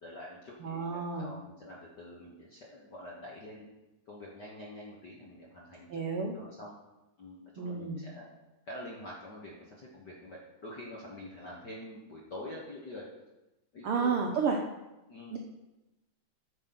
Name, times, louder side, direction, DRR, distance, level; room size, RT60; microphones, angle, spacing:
voice 1, 0.0-3.7 4.1-5.9 6.3-6.8 7.2-8.3 8.6-13.1 13.7-14.2 15.1-15.4, left 1 dB, 60° left, -3 dB, 1.1 m, -46 dB
voice 2, 0.6-1.3 5.9-6.3 7.6-8.0 13.8-14.6 15.3-15.4, right 5 dB, 90° right, 1 dB, 1.2 m, -31 dB
9.1 x 6.2 x 6.0 m, 1.0 s
omnidirectional pair, 3.8 m